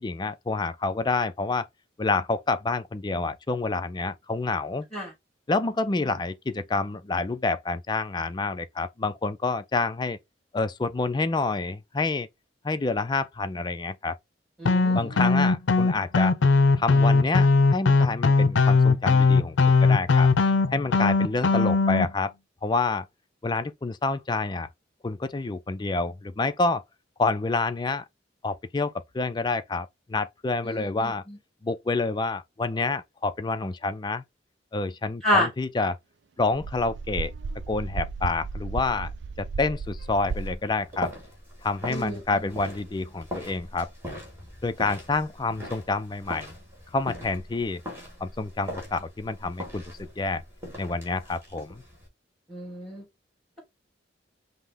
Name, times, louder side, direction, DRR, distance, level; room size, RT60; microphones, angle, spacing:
voice 1, 0.0-1.7 2.0-4.9 5.5-10.2 10.5-12.3 12.6-14.2 14.9-16.4 16.8-20.3 20.7-22.3 22.6-23.1 23.4-24.7 25.0-26.8 27.2-28.0 28.4-31.2 31.6-34.2 34.7-36.0 36.4-37.3 37.7-39.1 39.4-41.1 41.6-43.9 44.6-46.5 46.9-47.8 48.2-50.4 50.8-51.8, left 3 dB, 25° left, 0.4 m, -28 dB
sound 1, 14.6-22.1, left 3 dB, 80° left, 0.5 m, -19 dB
voice 2, 14.6-15.2 30.6-31.4 35.2-35.5 41.9-42.5 52.5-53.0, left 1 dB, ahead, 2.8 m, -29 dB
sound 2, 36.5-40.6, right 4 dB, 65° right, 0.4 m, -34 dB
sound 3, 39.8-52.1, equal, 15° right, 1.9 m, -41 dB
5.6 x 2.1 x 3.4 m
head